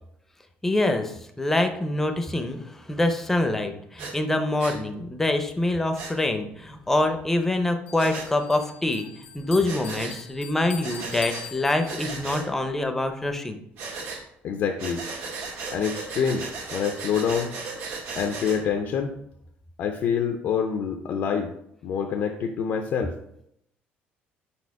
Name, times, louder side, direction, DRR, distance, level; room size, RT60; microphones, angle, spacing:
voice 1, 0.6-13.6, left 2 dB, 10° left, 6 dB, 0.6 m, -25 dB
Breathing, 4.0-4.1 4.6-4.8 5.9-6.1 8.0-8.3 9.6-10.2 10.8-11.5 11.8-12.5 13.8-14.2 14.8-18.6, right 4 dB, 70° right, 1.6 m, -35 dB
Bell, 7.9-12.4, left 9 dB, 85° left, 1.1 m, -43 dB
voice 2, 14.4-15.0 15.7-17.5 18.2-19.2 19.8-21.5 21.8-23.1, left 7 dB, 55° left, 4 dB, 0.5 m, -26 dB
4.8 x 4.3 x 4.7 m, 0.75 s
cardioid pair, 145°, 4 cm